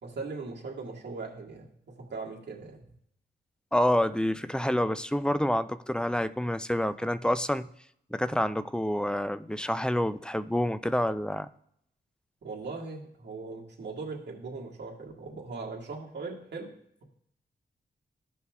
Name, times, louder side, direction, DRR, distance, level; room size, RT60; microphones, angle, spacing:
voice 1, 0.0-2.8 12.4-16.7, right 3 dB, 65° right, -3 dB, 1.8 m, -39 dB
voice 2, 3.7-7.7 8.1-11.5, left 1 dB, 5° left, 13 dB, 0.4 m, -28 dB
15.5 x 5.6 x 2.4 m, 0.71 s
cardioid pair, 80°, 19 cm